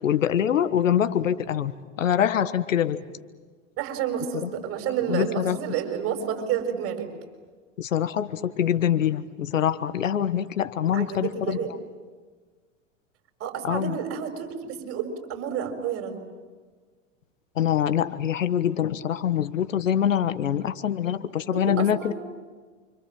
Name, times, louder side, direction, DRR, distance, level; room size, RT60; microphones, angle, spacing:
voice 1, 0.0-3.0 4.4-4.5 5.1-5.6 7.8-11.6 13.6-14.0 17.6-22.1, left 9 dB, 85° left, 13 dB, 1.5 m, -24 dB
voice 2, 3.8-7.1 10.9-11.7 13.4-16.2 20.4-20.5 21.5-22.1, right 8 dB, 40° right, 4 dB, 6.3 m, -30 dB
29.5 x 26.5 x 7.7 m, 1.4 s
hypercardioid pair, 110°, 38 cm